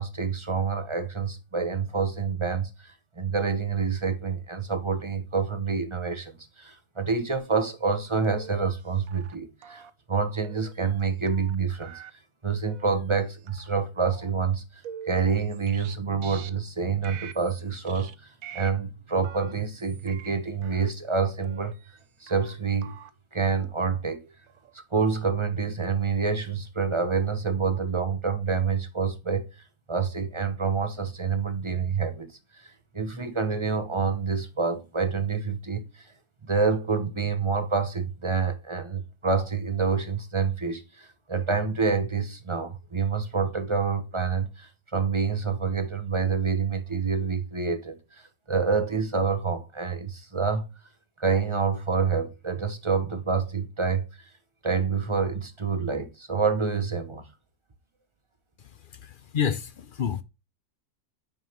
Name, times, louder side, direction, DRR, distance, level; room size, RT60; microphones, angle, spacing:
voice 1, 0.0-9.8 10.1-12.0 12.4-21.7 22.2-23.0 23.3-24.3 24.9-36.1 36.5-50.7 51.2-54.3 54.6-57.2, right 5 dB, 25° right, 0.9 m, -27 dB
sound 1, 8.2-8.8 9.1-9.4 9.6-9.9 10.4-11.0 11.3-11.6 11.8-12.1 12.6-12.9 13.4-13.8 14.0-14.3 14.8-15.9 16.2-16.5 17.0-17.6 17.9-18.1 18.4-18.7 19.2-20.3 20.6-20.9 21.4-22.0 22.3-22.5 22.8-23.1 23.6-23.7 24.5-24.7 25.0-25.3 25.8-26.3, right 9 dB, 65° right, 1.1 m, -45 dB
voice 2, 58.6-60.2, left 7 dB, 55° left, 0.6 m, -30 dB
9.4 x 5.1 x 3.0 m
omnidirectional pair, 1.6 m